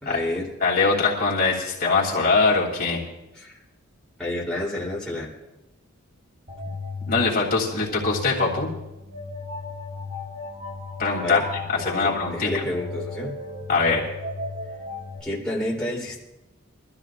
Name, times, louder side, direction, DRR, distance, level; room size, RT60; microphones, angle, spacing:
voice 1, 0.0-0.5 3.3-3.6 4.2-5.3 11.2-11.5 11.7-13.4 15.2-16.2, left 1 dB, 5° left, -6 dB, 3.2 m, -30 dB
voice 2, 0.6-3.0 7.1-8.7 11.0-12.5 13.7-14.0, left 4 dB, 45° left, -4 dB, 3.1 m, -22 dB
sound 1, 6.5-15.2, left 3 dB, 35° right, 1.9 m, -35 dB
24.0 x 14.0 x 2.5 m, 0.92 s
head